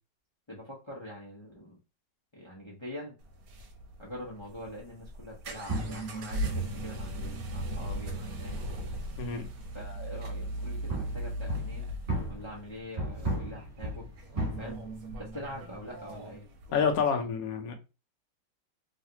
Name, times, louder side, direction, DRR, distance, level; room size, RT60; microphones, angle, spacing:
voice 1, 0.5-1.8 2.3-3.2 4.0-8.6 9.7-11.9 12.3-14.1 14.6-14.8 15.2-16.9, left 1 dB, 35° left, -4 dB, 0.4 m, -44 dB
sound 1, 3.2-17.1, right 1 dB, 70° right, 1.3 m, -38 dB
sound 2, 5.7-10.0 10.3-16.4, right 2 dB, 30° right, 1.6 m, -37 dB
voice 2, 9.2-9.5 16.7-17.7, left 6 dB, 65° left, 4 dB, 1.0 m, -28 dB
3.2 x 2.5 x 2.8 m, 0.29 s
omnidirectional pair, 1.9 m